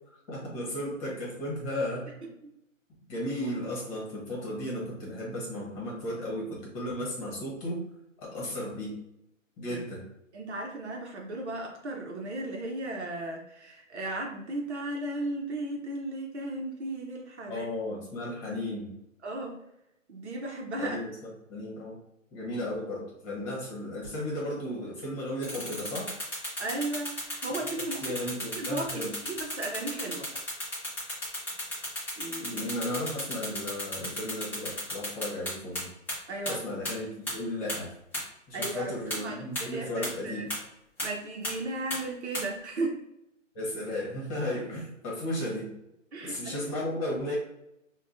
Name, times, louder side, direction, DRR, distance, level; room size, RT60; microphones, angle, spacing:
voice 1, 0.3-2.1 3.1-7.8 8.2-9.0 9.6-10.0 17.5-18.9 20.8-21.1 21.5-22.0 22.3-26.1 28.0-29.1 32.4-35.9 36.5-37.1 37.3-37.9 38.5-40.5 43.5-45.7 46.2-47.3, left 1 dB, 25° left, -4 dB, 1.4 m, -34 dB
voice 2, 10.3-17.7 19.2-19.6 20.1-21.0 26.6-28.1 28.6-30.3 32.2-32.6 36.3-36.6 38.5-40.4 41.0-43.0 46.1-46.7, right 2 dB, 55° right, 1 dB, 0.9 m, -35 dB
sound 1, 25.4-35.8 36.1-36.2 36.5-36.6 36.9-37.0 37.3-37.4 37.7-37.8 38.1-38.2 38.6-38.7 39.1-39.2 39.6-39.7 40.0-40.1 40.5-40.6 41.0-41.1 41.4-41.5 41.9-42.0 42.3-42.4, left 1 dB, 5° left, 0.9 m, -33 dB
5.2 x 2.4 x 2.5 m, 0.82 s
figure-of-eight pair, 135°, 40 cm